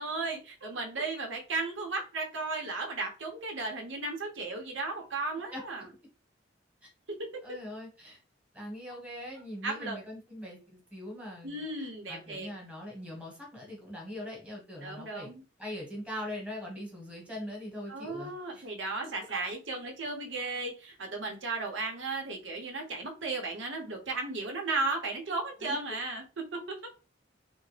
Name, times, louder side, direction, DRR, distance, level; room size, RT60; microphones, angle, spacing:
voice 1, 0.0-5.9 7.2-7.3 9.6-10.0 11.4-12.5 14.8-15.4 17.9-26.7, right 3 dB, 80° right, 1 dB, 1.0 m, -35 dB
voice 2, 7.4-8.2 8.5-15.3 15.6-18.7 25.6-25.8, left 1 dB, 5° right, -2 dB, 1.3 m, -42 dB
3.5 x 2.2 x 3.3 m, 0.34 s
head